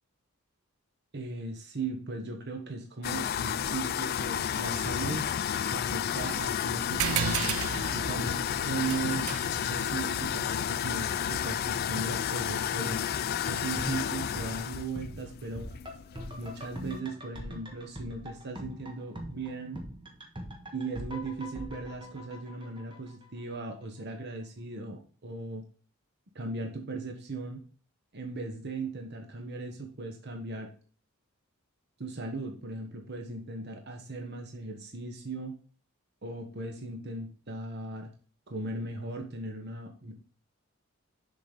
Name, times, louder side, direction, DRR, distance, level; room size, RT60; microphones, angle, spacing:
voice 1, 1.1-5.3 5.7-7.6 7.9-9.3 9.7-13.0 13.5-15.7 16.4-19.8 20.7-25.6 26.3-27.6 28.1-30.7 32.0-35.5 36.2-38.1 38.5-40.1, right 3 dB, 50° right, 3 dB, 1.0 m, -37 dB
sound 1, 3.0-17.0, left 9 dB, 45° left, 0.3 m, -32 dB
sound 2, 7.0-11.9, right 10 dB, 85° right, 0.4 m, -36 dB
sound 3, 13.7-23.2 23.5-23.6, equal, 25° right, 1.3 m, -43 dB
6.9 x 4.0 x 5.1 m, 0.40 s
head